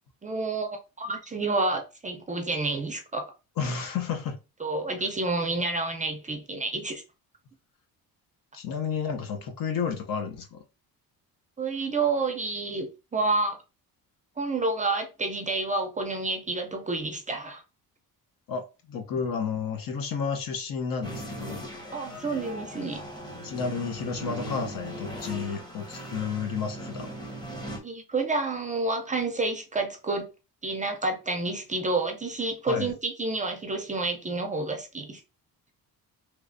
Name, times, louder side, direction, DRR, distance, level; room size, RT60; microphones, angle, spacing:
voice 1, 0.2-3.3 4.6-7.0 11.6-13.6 14.4-17.6 21.9-23.0 27.8-30.3 30.6-35.2, right 3 dB, 20° right, 0.4 m, -29 dB
voice 2, 3.6-4.4 8.5-10.6 18.5-21.7 23.4-27.1 32.7-32.9, left 6 dB, 60° left, 0.8 m, -31 dB
sound 1, 21.0-27.8, equal, 10° left, 0.9 m, -39 dB
3.3 x 3.1 x 2.6 m
cardioid pair, 125°, 38 cm